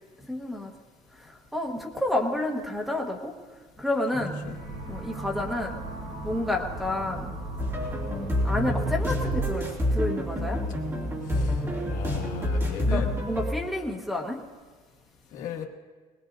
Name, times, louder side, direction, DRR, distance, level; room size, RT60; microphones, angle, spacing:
voice 1, 0.3-0.7 1.2-3.3 3.8-4.3 4.9-5.7 6.2-7.3 8.4-10.6 12.9-14.4, left 1 dB, ahead, -1 dB, 1.2 m, -30 dB
sound 1, 4.1-10.1, right 2 dB, 65° right, 6.1 m, -38 dB
voice 2, 4.2-4.6 11.3-11.6 11.9-13.1 15.3-15.7, left 8 dB, 55° left, 3 dB, 1.4 m, -36 dB
sound 2, 7.6-13.5, equal, 15° right, 2.5 m, -28 dB
21.0 x 20.0 x 2.6 m, 1.4 s
cardioid pair, 170°, 15 cm